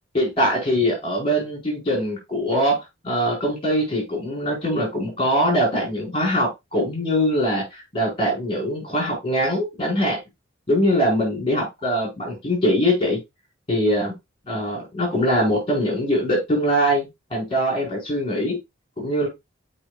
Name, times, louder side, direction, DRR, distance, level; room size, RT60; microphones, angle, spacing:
voice 1, 0.1-2.8 3.0-10.2 10.7-13.2 13.7-14.1 14.5-18.6 19.0-19.3, equal, 30° left, -2 dB, 4.2 m, -22 dB
8.8 x 5.0 x 2.3 m, 0.21 s
head